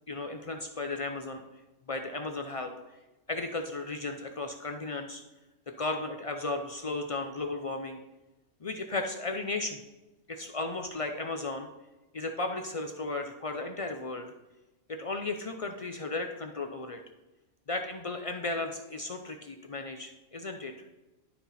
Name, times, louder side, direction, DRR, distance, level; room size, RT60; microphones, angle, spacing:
voice 1, 0.1-1.4 1.9-2.7 3.3-5.2 5.7-8.0 8.6-9.8 10.3-11.7 12.1-14.3 14.9-17.0 17.7-20.7, left 2 dB, 55° left, 5 dB, 0.3 m, -35 dB
12.0 x 4.0 x 4.1 m, 1.1 s
omnidirectional pair, 1.3 m